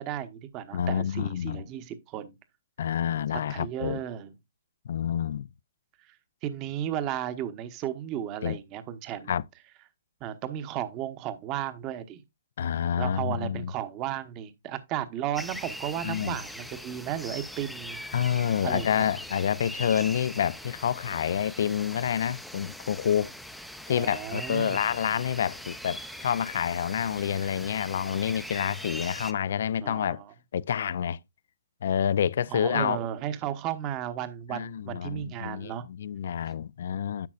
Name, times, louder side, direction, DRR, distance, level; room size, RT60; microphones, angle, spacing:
voice 1, 0.0-2.4 3.5-4.3 6.4-9.3 10.2-12.2 13.0-18.1 18.6-19.1 23.9-24.8 29.8-30.3 32.5-35.9, right 11 dB, 25° right, 0.9 m, -34 dB
voice 2, 0.7-1.6 2.8-4.0 4.9-5.5 8.4-8.6 9.3-9.4 12.6-13.7 16.0-16.4 18.1-23.3 23.9-30.2 30.5-31.2 31.8-33.0 34.5-37.3, left 9 dB, 60° left, 0.4 m, -28 dB
sound 1, 15.4-29.3, equal, ahead, 0.5 m, -41 dB
10.5 x 7.1 x 2.4 m
hypercardioid pair, 150°, 0 cm